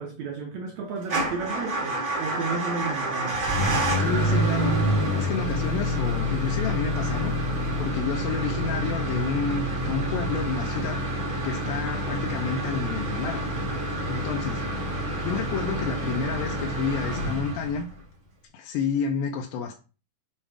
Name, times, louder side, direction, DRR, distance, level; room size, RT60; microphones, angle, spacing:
voice 1, 0.0-3.5, right 4 dB, 80° right, 1.6 m, -33 dB
Motor vehicle (road) / Engine starting / Idling, 1.0-18.0, equal, 45° right, 1.8 m, -27 dB
voice 2, 4.0-4.8 5.2-7.3 7.8-11.1 11.4-13.5 14.0-14.8 15.2-17.9 18.5-19.8, left 6 dB, 85° left, 2.5 m, -30 dB
7.2 x 3.1 x 4.7 m
omnidirectional pair, 4.1 m